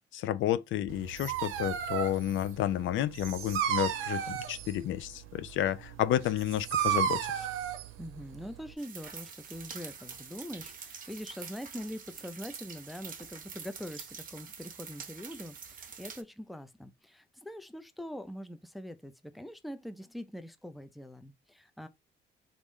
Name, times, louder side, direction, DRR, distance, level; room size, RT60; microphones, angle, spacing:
voice 1, 0.1-7.5, left 12 dB, 75° left, 0.4 m, -31 dB
Dog, 0.9-8.7, right 9 dB, 90° right, 0.6 m, -34 dB
voice 2, 8.0-21.9, equal, ahead, 0.4 m, -43 dB
sound 1, 8.8-16.2, right 6 dB, 45° right, 0.7 m, -46 dB
3.1 x 2.5 x 3.6 m
cardioid pair, 90°, 20 cm